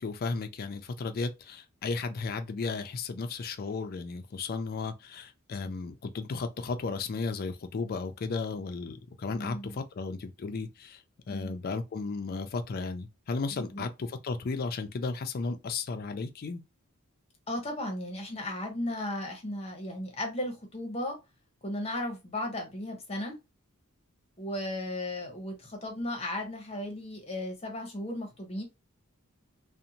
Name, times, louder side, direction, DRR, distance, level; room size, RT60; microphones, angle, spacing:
voice 1, 0.0-11.0 11.3-16.6, left 4 dB, 45° left, 0.4 m, -34 dB
voice 2, 9.3-9.8 11.3-11.5 13.6-13.8 17.5-21.2 21.6-23.3 24.4-28.6, left 1 dB, 30° left, 0.8 m, -35 dB
2.6 x 2.1 x 2.7 m
head